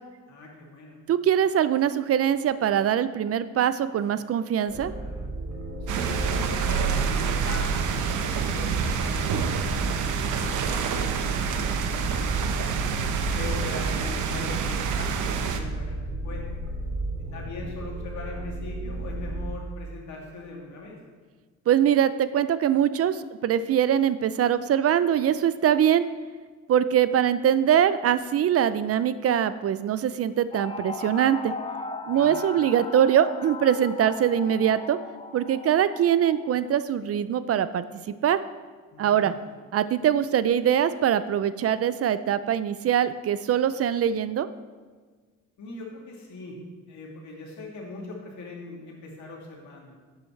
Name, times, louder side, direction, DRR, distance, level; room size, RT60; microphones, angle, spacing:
voice 1, 0.3-1.0 5.8-12.8 13.3-16.0 16.2-16.4 17.3-21.0 32.1-32.5 38.9-39.5 45.6-46.6 46.9-50.0, left 2 dB, 70° left, -2 dB, 2.5 m, -41 dB
voice 2, 1.1-4.9 21.7-26.1 26.7-31.5 32.1-35.0 35.3-38.4 39.0-39.3 39.7-44.5, right 9 dB, 50° right, 14 dB, 0.5 m, -23 dB
sound 1, 4.7-19.5, right 2 dB, 65° right, 3.3 m, -33 dB
sound 2, 5.9-15.6, right 6 dB, 85° right, 0.8 m, -28 dB
sound 3, 30.5-36.6, left 3 dB, 20° left, 0.5 m, -38 dB
12.0 x 8.3 x 3.2 m, 1.5 s
cardioid pair, 90°, 30 cm